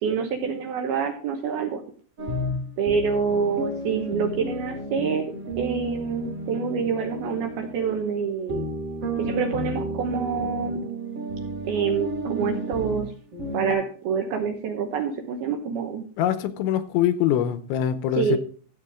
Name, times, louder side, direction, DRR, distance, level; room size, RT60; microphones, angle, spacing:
voice 1, 0.0-1.8 2.8-5.2 5.6-8.6 9.2-10.8 11.6-13.1 13.5-16.1 18.2-18.4, right 6 dB, 75° right, 2.4 m, -26 dB
sound 1, 2.2-13.7, right 1 dB, 35° right, 3.0 m, -32 dB
voice 2, 16.2-18.4, left 10 dB, 85° left, 3.0 m, -23 dB
13.5 x 8.2 x 3.6 m
omnidirectional pair, 5.5 m